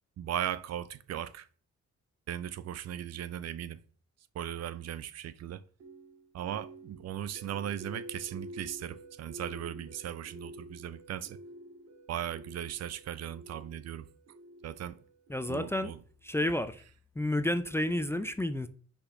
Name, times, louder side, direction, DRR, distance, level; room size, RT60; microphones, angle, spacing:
voice 1, 0.2-1.5 2.3-3.8 4.3-5.6 6.3-11.4 12.1-14.1 14.6-15.0 15.5-16.0, right 10 dB, 60° right, 0.5 m, -37 dB
sound 1, 5.8-15.9, right 1 dB, 90° right, 1.9 m, -49 dB
voice 2, 15.3-15.9 16.2-16.8 17.2-18.7, left 1 dB, 10° left, 0.4 m, -30 dB
5.6 x 4.3 x 5.7 m
cardioid pair, 145°, 29 cm